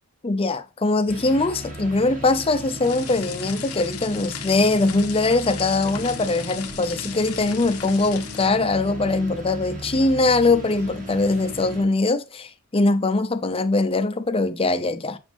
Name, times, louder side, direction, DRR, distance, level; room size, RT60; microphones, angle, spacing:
voice 1, 0.2-15.2, left 2 dB, 25° left, 0.6 m, -22 dB
sound 1, 1.1-11.8, right 1 dB, 35° right, 1.9 m, -37 dB
sound 2, 2.8-8.5, left 11 dB, 75° left, 0.8 m, -37 dB
7.2 x 6.0 x 3.4 m
head